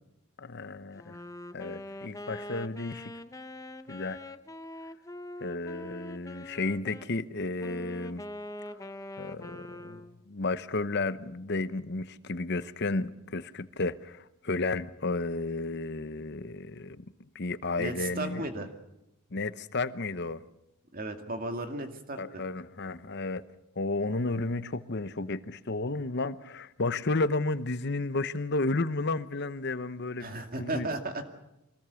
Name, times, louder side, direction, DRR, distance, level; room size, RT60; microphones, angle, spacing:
voice 1, 0.4-1.2 1.5-3.1 3.9-4.2 5.4-8.2 8.7-8.8 9.2-17.0 17.3-18.4 19.3-20.4 22.2-23.4 23.8-30.9, left 3 dB, 50° left, 0.9 m, -32 dB
Wind instrument woodwind instrument, 0.9-7.1 7.6-10.2, left 1 dB, 15° left, 0.8 m, -43 dB
voice 2, 17.8-18.7 20.9-22.4 30.2-31.2, right 2 dB, 40° right, 2.3 m, -35 dB
24.5 x 19.0 x 7.0 m
head